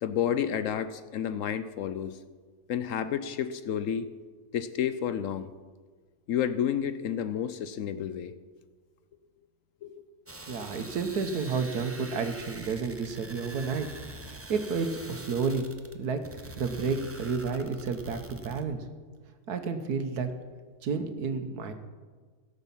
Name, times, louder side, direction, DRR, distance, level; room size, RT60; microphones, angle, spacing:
voice 1, 0.0-2.2 2.7-4.1 4.5-5.5 6.3-8.3 9.8-10.0, left 9 dB, 65° left, 12 dB, 0.9 m, -30 dB
sound 1, 10.3-18.6, right 1 dB, 15° right, 0.5 m, -45 dB
voice 2, 10.5-13.9 14.3-15.7 15.9-16.3 16.6-18.8 19.5-20.3 20.8-21.7, right 5 dB, 90° right, 8 dB, 1.6 m, -31 dB
16.5 x 7.1 x 5.5 m, 1.5 s
omnidirectional pair, 1.6 m